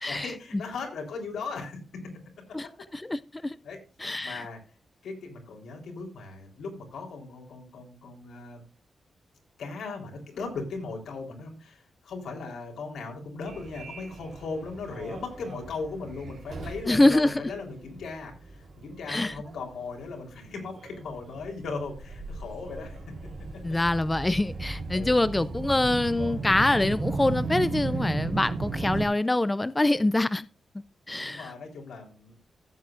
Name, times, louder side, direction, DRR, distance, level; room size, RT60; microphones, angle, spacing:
voice 1, 0.1-1.8 2.6-2.7 3.6-3.8 4.2-4.6 5.0-8.6 9.6-23.0 24.9-25.2 31.2-32.4, left 4 dB, 85° left, 3.7 m, -38 dB
voice 2, 2.9-3.6 4.0-4.4 16.9-17.3 19.1-19.3 23.6-30.5 31.1-31.5, left 2 dB, 15° left, 0.4 m, -25 dB
Subway metro underground, 13.5-29.1, right 3 dB, 55° right, 3.7 m, -36 dB
15.5 x 8.3 x 2.5 m
wide cardioid pair, 130°, 0 cm